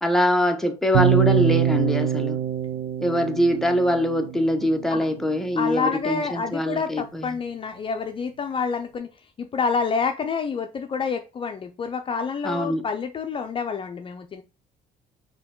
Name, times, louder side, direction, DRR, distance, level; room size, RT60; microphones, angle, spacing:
voice 1, 0.0-2.4 3.0-7.3 12.4-12.8, left 1 dB, ahead, 0.8 m, -23 dB
sound 1, 0.9-5.0, right 10 dB, 75° right, 0.6 m, -24 dB
voice 2, 5.6-9.1 9.4-14.4, left 5 dB, 30° left, 0.5 m, -28 dB
4.6 x 2.8 x 3.7 m
cardioid pair, 110°, 17 cm